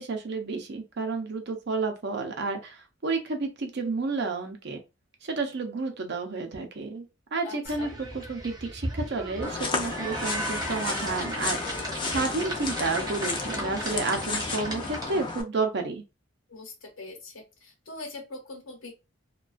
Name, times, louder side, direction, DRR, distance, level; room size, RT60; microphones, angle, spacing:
voice 1, 0.0-4.8 5.2-7.1 7.3-16.0, right 3 dB, 60° right, 4 dB, 0.6 m, -31 dB
voice 2, 7.4-8.0 16.5-18.9, left 2 dB, 80° left, 1 dB, 0.9 m, -42 dB
sound 1, 7.6-15.4, right 1 dB, 20° right, 0.6 m, -36 dB
sound 2, 9.4-15.4, left 4 dB, 25° left, 0.4 m, -33 dB
2.3 x 2.2 x 2.4 m, 0.27 s
head